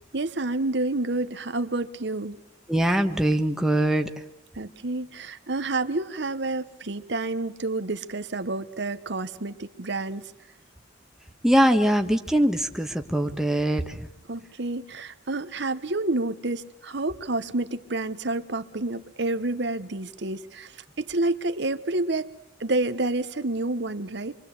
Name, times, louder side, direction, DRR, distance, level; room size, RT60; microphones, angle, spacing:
voice 1, 0.1-2.4 4.6-10.2 14.3-22.3 22.6-24.3, right 2 dB, 60° right, 11 dB, 1.1 m, -29 dB
voice 2, 2.7-4.1 11.4-14.1, right 1 dB, 5° right, 5 dB, 1.4 m, -22 dB
26.5 x 24.0 x 8.1 m, 0.83 s
head